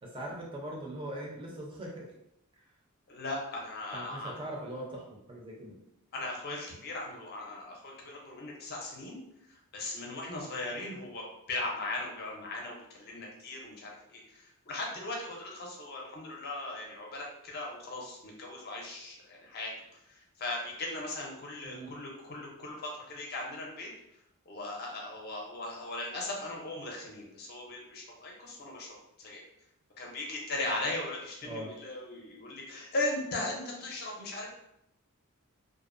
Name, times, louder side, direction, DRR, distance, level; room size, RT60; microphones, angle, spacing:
voice 1, 0.0-2.1 3.9-5.8 21.6-21.9 31.4-31.7, right 1 dB, 20° right, -2 dB, 0.5 m, -41 dB
voice 2, 3.1-4.3 6.1-9.2 9.5-19.7 20.1-23.9 24.5-29.4 30.0-34.5, left 2 dB, 45° left, -1 dB, 0.5 m, -38 dB
2.5 x 2.0 x 2.5 m, 0.80 s
head